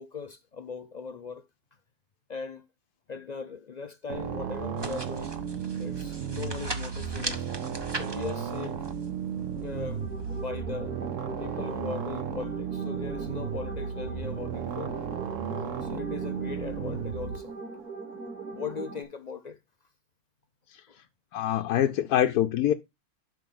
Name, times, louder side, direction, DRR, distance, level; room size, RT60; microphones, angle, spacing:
voice 1, 0.0-1.4 2.3-2.7 3.1-5.4 5.8-7.5 7.9-8.9 9.5-10.9 11.4-15.1 15.8-17.5 18.5-19.6 20.9-21.0, left 5 dB, 65° left, 0.4 m, -39 dB
sound 1, 4.1-17.4, right 7 dB, 60° right, 1.2 m, -34 dB
paper long, 4.8-10.5, right 2 dB, 20° right, 0.9 m, -40 dB
sound 2, 9.6-19.0, right 4 dB, 85° right, 2.2 m, -41 dB
voice 2, 21.3-22.7, left 11 dB, 90° left, 1.2 m, -25 dB
11.5 x 5.6 x 3.8 m
omnidirectional pair, 1.6 m